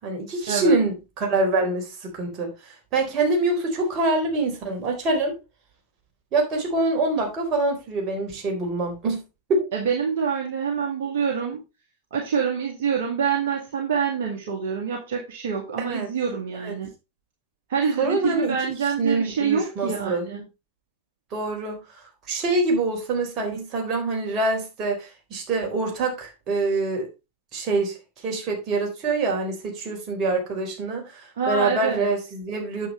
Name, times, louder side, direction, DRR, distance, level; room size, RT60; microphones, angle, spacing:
voice 1, 0.0-2.5 2.9-5.3 6.3-9.2 9.5-9.7 15.8-16.1 16.6-16.7 18.0-18.6 19.0-20.2 21.3-21.8 22.3-27.1 27.5-28.0 28.2-32.9, right 2 dB, 35° right, 3.9 m, -25 dB
voice 2, 9.7-11.6 12.1-16.9 17.7-20.4 31.4-32.1, right 6 dB, 55° right, 1.9 m, -26 dB
9.2 x 7.3 x 3.2 m
figure-of-eight pair, 90°, 0 cm